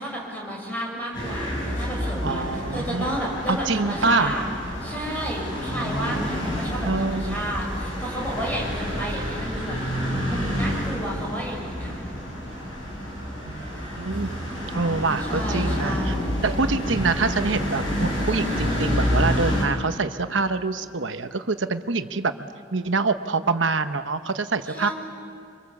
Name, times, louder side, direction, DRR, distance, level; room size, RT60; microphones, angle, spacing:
voice 1, 0.0-4.5 4.8-9.8 10.3-12.1 15.3-16.3 24.7-24.9, equal, 10° left, -3 dB, 6.2 m, -31 dB
sound 1, 1.1-19.6, equal, 75° left, 7.0 m, -28 dB
voice 2, 2.2-3.1 3.5-4.4 6.8-7.4 13.4-14.4 14.7-16.1 16.4-22.3 22.7-24.9, right 3 dB, 70° right, 9 dB, 1.0 m, -25 dB
25.0 x 25.0 x 7.3 m, 2.4 s
head